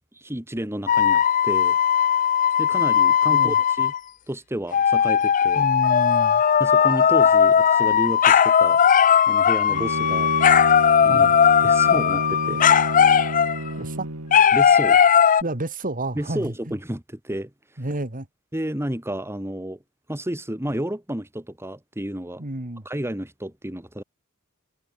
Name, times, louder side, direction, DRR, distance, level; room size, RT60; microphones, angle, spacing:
voice 1, 0.1-1.8 2.6-3.9 4.3-5.6 6.6-8.8 9.3-10.3 11.0-11.3 11.6-12.8 14.5-15.0 16.2-17.8 18.5-19.8 20.1-22.4 22.8-24.0, right 1 dB, 10° right, 2.4 m, -31 dB
sound 1, 0.9-4.0 4.7-13.7 14.3-15.4, left 8 dB, 35° left, 0.5 m, -18 dB
voice 2, 5.5-6.4 11.1-11.4 13.8-14.1 15.4-16.8 17.8-18.3 22.4-22.9, right 1 dB, 40° right, 2.7 m, -30 dB
Bowed string instrument, 9.7-14.4, right 1 dB, 80° right, 3.6 m, -30 dB
head